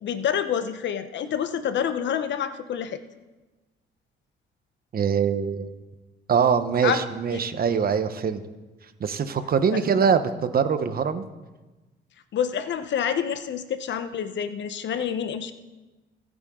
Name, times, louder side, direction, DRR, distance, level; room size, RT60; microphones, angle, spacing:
voice 1, 0.0-3.0 6.8-7.0 7.3-7.4 9.7-9.8 12.3-15.5, left 8 dB, 65° left, 11 dB, 1.0 m, -27 dB
voice 2, 4.9-5.7 6.3-8.4 9.0-11.2, right 6 dB, 50° right, 10 dB, 1.1 m, -23 dB
23.5 x 9.0 x 3.8 m, 1.2 s
cardioid pair, 90°, 20 cm